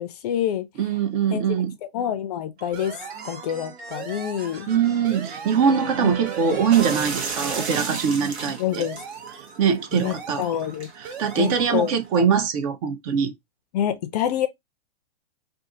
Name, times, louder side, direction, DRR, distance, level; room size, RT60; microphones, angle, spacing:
voice 1, 0.0-0.7 1.3-1.6 1.9-3.0 3.2-4.7 6.0-6.1 8.6-9.0 9.9-10.9 11.3-12.3 13.7-14.5, left 10 dB, 40° left, 0.5 m, -27 dB
voice 2, 0.8-1.7 4.7-8.8 9.6-10.4 11.0-13.3, right 7 dB, 35° right, 0.6 m, -22 dB
sound 1, 2.6-8.0, right 6 dB, 70° right, 1.3 m, -38 dB
sound 2, 2.7-3.6 3.9-4.8 5.0-5.9 6.2-7.1 7.4-8.3 8.7-9.6 9.9-10.8 11.0-11.9, right 6 dB, 50° right, 1.2 m, -39 dB
sound 3, 6.7-12.2, right 5 dB, 85° right, 1.1 m, -35 dB
2.5 x 2.5 x 3.7 m
hypercardioid pair, 125°, 32 cm